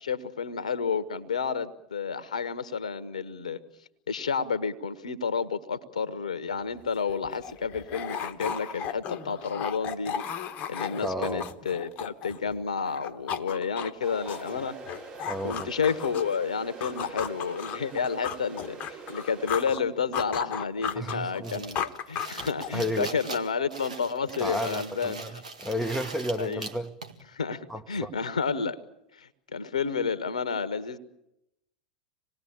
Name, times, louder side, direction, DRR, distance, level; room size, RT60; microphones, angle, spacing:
voice 1, 0.0-3.6 4.1-10.2 10.7-14.8 15.4-25.2 26.4-26.6 27.3-28.8 29.1-31.0, left 6 dB, 75° left, 13 dB, 1.3 m, -30 dB
sound 1, 6.7-6.8 7.1-12.6 12.9-16.4 16.8-19.8 20.1-22.9, left 8 dB, 40° left, 1.2 m, -35 dB
voice 2, 11.0-11.6 15.3-15.7 20.9-21.7 22.7-23.1 24.4-27.0 27.7-28.1, equal, ahead, 4 dB, 1.2 m, -32 dB
sound 2, 14.0-19.7, right 4 dB, 30° right, 2.8 m, -44 dB
sound 3, 21.4-27.2, right 3 dB, 75° right, 1.8 m, -41 dB
26.0 x 19.5 x 8.9 m, 0.84 s
figure-of-eight pair, 85°, 4 cm